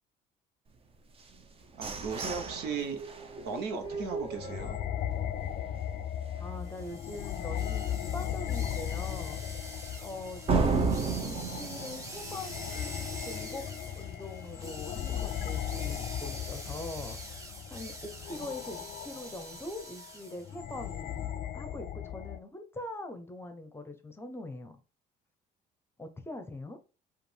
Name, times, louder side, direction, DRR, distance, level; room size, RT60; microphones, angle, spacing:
sound 1, 1.2-5.1 5.5-5.6 6.0-6.4 6.8-6.9 7.4-7.5 10.5-13.1, right 4 dB, 35° right, 0.7 m, -33 dB
voice 1, 1.8-3.0 3.4-4.8, right 5 dB, 80° right, 1.0 m, -36 dB
sound 2, 3.8-22.4, left 10 dB, 55° left, 0.4 m, -37 dB
voice 2, 6.4-7.8 8.1-9.4 10.0-13.7 14.0-17.2 17.7-24.8 26.0-26.8, left 2 dB, 15° left, 0.8 m, -43 dB
sound 3, 6.6-20.5, right 1 dB, 20° right, 1.2 m, -46 dB
5.0 x 2.5 x 3.3 m
cardioid pair, 110°, 17 cm